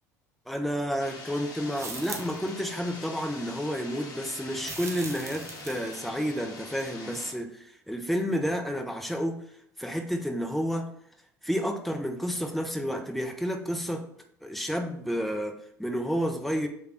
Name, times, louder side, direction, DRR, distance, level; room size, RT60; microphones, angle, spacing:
voice 1, 0.5-9.4 9.8-10.9 11.4-14.1 14.4-16.7, equal, ahead, 4 dB, 0.6 m, -30 dB
sound 1, 1.0-7.3, left 3 dB, 45° left, 0.9 m, -44 dB
sound 2, 1.8-2.5 4.6-6.0, right 4 dB, 30° right, 0.7 m, -40 dB
3.3 x 2.4 x 4.4 m, 0.69 s
hypercardioid pair, 75°, 9 cm